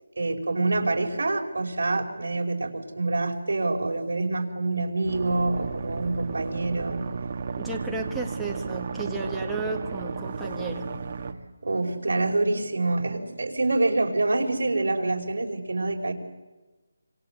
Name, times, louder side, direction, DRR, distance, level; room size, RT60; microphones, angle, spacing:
voice 1, 0.2-7.0 11.6-16.1, right 2 dB, 60° right, 2 dB, 5.2 m, -26 dB
sound 1, 5.1-11.3, right 4 dB, 25° right, 1.4 m, -34 dB
voice 2, 7.6-10.9, right 3 dB, ahead, -3 dB, 1.5 m, -33 dB
26.5 x 26.0 x 8.1 m, 1.2 s
figure-of-eight pair, 180°, 0 cm